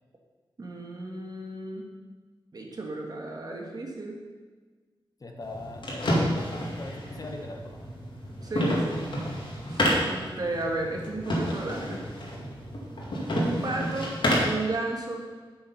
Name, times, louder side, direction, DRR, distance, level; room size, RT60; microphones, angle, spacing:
voice 1, 0.6-2.0 2.5-4.3 8.4-9.1 9.7-12.0 13.3-14.1 14.4-15.4, right 2 dB, 45° right, 1 dB, 1.5 m, -34 dB
voice 2, 5.2-6.1 6.8-7.9, left 2 dB, 45° left, 3 dB, 1.0 m, -40 dB
sound 1, 5.4-14.6, equal, 65° left, 2.2 m, -29 dB
7.9 x 7.0 x 5.5 m, 1.4 s
wide cardioid pair, 125°, 9 cm